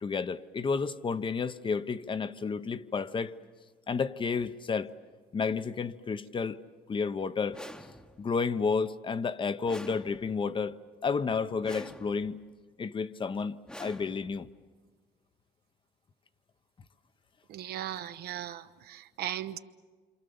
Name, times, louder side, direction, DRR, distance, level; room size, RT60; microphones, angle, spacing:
voice 1, 0.0-3.4 3.9-4.9 5.3-6.6 6.9-7.6 8.2-10.8 11.0-12.4 12.8-14.5, left 5 dB, 30° left, 0.8 m, -31 dB
sound 1, 7.5-8.4 9.6-10.6 11.6-12.4 13.7-14.6, left 1 dB, 5° left, 0.9 m, -47 dB
voice 2, 17.5-19.6, right 11 dB, 70° right, 0.9 m, -37 dB
27.5 x 26.5 x 7.0 m
cardioid pair, 110°, 17 cm